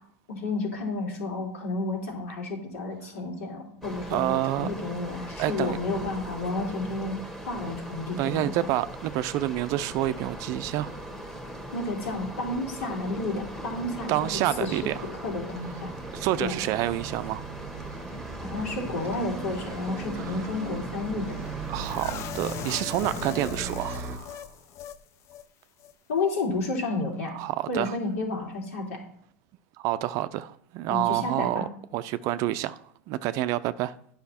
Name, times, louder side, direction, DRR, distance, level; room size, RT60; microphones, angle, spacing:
voice 1, 0.3-7.2 7.5-8.5 11.7-14.1 14.6-14.8 15.1-15.9 16.4-16.5 18.4-21.3 26.1-27.3 27.7-29.0 30.9-31.6, left 2 dB, 80° left, 3.1 m, -31 dB
sound 1, 3.8-22.0, right 1 dB, ahead, 1.4 m, -40 dB
voice 2, 4.1-4.7 5.4-5.8 8.2-11.0 14.1-15.1 16.1-17.5 20.2-20.5 21.7-24.5 27.3-28.0 29.8-33.9, right 14 dB, 45° right, 0.4 m, -28 dB
Bus, 15.9-24.2, right 6 dB, 25° right, 0.9 m, -39 dB
sound 2, 21.8-25.0 25.3-25.4 25.8-25.9, left 10 dB, 40° left, 0.6 m, -39 dB
9.5 x 5.7 x 4.3 m
hypercardioid pair, 110°, 8 cm